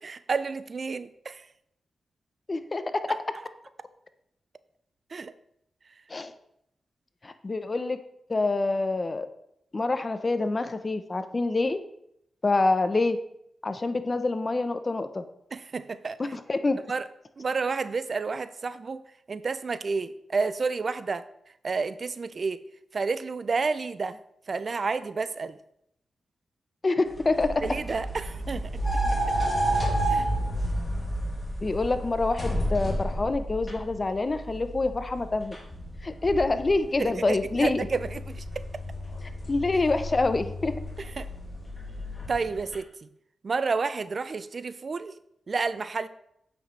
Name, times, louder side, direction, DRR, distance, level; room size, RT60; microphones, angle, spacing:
voice 1, 0.0-1.4 5.1-5.3 15.5-16.2 16.9-17.1 17.4-19.0 19.3-21.3 21.6-22.6 22.9-24.2 24.5-25.6 27.6-28.7 30.1-30.3 37.0-38.4 39.7-39.8 41.0-41.3 42.3-43.1 43.4-45.1 45.5-46.1, right 4 dB, 55° right, 14 dB, 0.4 m, -30 dB
voice 2, 2.5-3.0 6.1-6.3 7.2-8.0 8.3-9.3 9.7-11.8 12.4-13.2 13.6-15.2 16.2-16.8 26.8-27.7 31.6-35.6 36.0-37.9 39.5-40.7, left 3 dB, 40° left, 10 dB, 0.7 m, -26 dB
sound 1, 27.1-42.8, right 1 dB, 20° left, 2.2 m, -31 dB
8.5 x 6.2 x 3.3 m, 0.76 s
cardioid pair, 60°, 0 cm